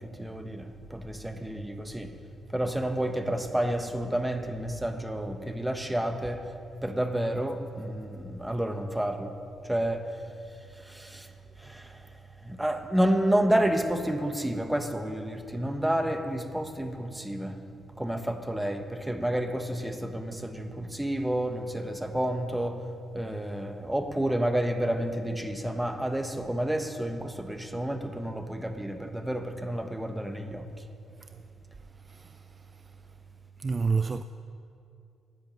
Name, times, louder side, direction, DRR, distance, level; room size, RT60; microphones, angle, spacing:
voice 1, 0.0-2.1 2.5-6.5 6.8-9.4 9.6-10.2 10.7-11.3 11.6-12.1 12.4-22.9 23.1-30.7, right 1 dB, 10° right, 1.4 m, -30 dB
voice 2, 31.8-33.1 33.6-34.2, right 5 dB, 35° right, 0.4 m, -32 dB
11.0 x 10.5 x 8.8 m
cardioid pair, 70°, 0 cm